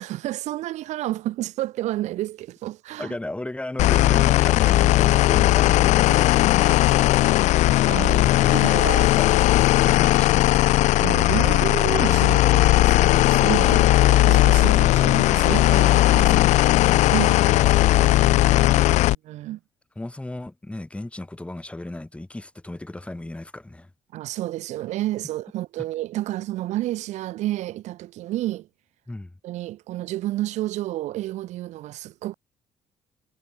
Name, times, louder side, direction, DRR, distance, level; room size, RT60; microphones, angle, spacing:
voice 1, 0.0-3.1 7.8-8.3 8.5-9.1 11.0-16.4 17.1-17.4 19.2-19.6 24.1-28.7 29.4-32.3, right 15 dB, 80° right, 1.4 m, -30 dB
voice 2, 3.0-6.3 6.6-7.7 8.3-10.4 17.5-18.8 20.0-23.9 29.1-29.3, left 1 dB, 10° left, 7.7 m, -36 dB
sound 1, 3.8-19.1, left 16 dB, 85° left, 0.9 m, -17 dB
cardioid pair, 105°, 12 cm